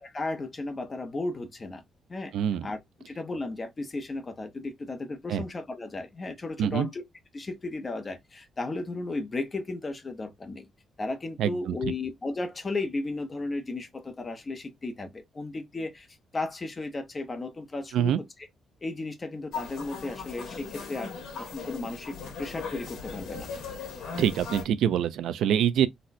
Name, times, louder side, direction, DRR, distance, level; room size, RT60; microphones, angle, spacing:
voice 1, 0.0-1.8 2.1-2.3 2.6-7.0 7.3-10.7 11.0-16.1 16.3-18.5 18.8-23.5, left 2 dB, 20° left, 0.6 m, -35 dB
voice 2, 2.3-2.7 5.3-5.4 6.6-6.9 11.4-11.7 17.9-18.2 24.2-25.9, right 9 dB, 90° right, 0.4 m, -25 dB
sound 1, 19.5-24.6, left 5 dB, 85° left, 1.6 m, -38 dB
4.0 x 2.1 x 2.5 m
cardioid pair, 170°, 0 cm